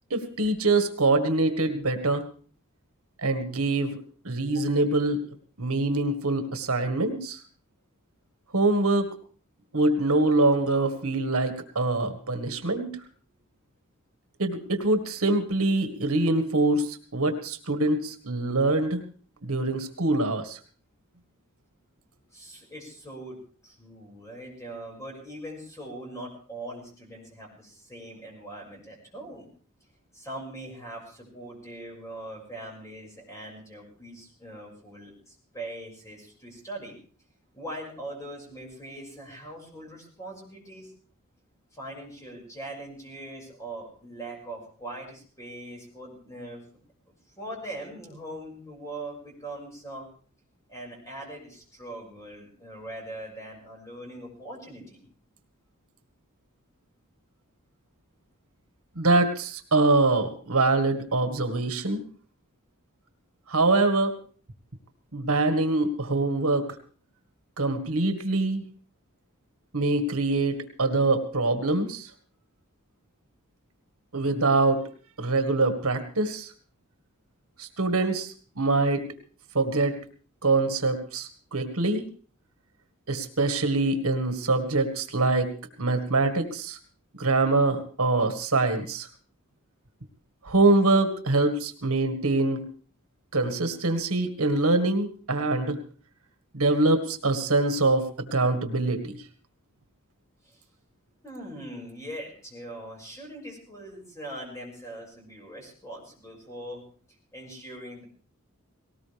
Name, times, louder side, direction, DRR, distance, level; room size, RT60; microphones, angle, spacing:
voice 1, 0.1-2.2 3.2-3.9 4.3-5.2 5.6-7.4 8.5-9.1 9.7-12.9 14.4-19.0 19.4-20.6 59.0-62.0 63.5-64.1 65.1-66.7 67.6-68.6 69.7-72.1 74.1-74.8 75.2-76.5 77.6-79.0 79.5-80.0 80.4-82.0 83.1-85.5 85.8-86.8 87.1-89.1 90.4-92.6 93.3-95.8 96.5-98.0 98.3-99.2, right 2 dB, 80° right, 7 dB, 1.8 m, -24 dB
voice 2, 22.3-29.5 30.1-36.9 37.5-40.9 41.7-46.6 47.1-50.1 50.7-55.1 100.4-100.6 101.2-106.8 107.3-108.0, right 1 dB, 15° left, -1 dB, 5.9 m, -41 dB
19.0 x 18.5 x 3.5 m, 0.41 s
head